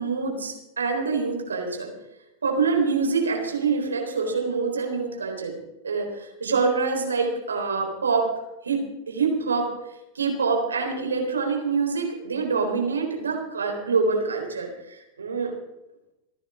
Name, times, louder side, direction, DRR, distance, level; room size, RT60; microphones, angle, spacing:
voice 1, 0.0-1.9 2.4-5.6 5.8-8.3 8.6-9.7 10.1-15.5, right 4 dB, 75° right, 2 dB, 3.9 m, -25 dB
28.0 x 9.9 x 3.7 m, 0.92 s
figure-of-eight pair, 90°, 0 cm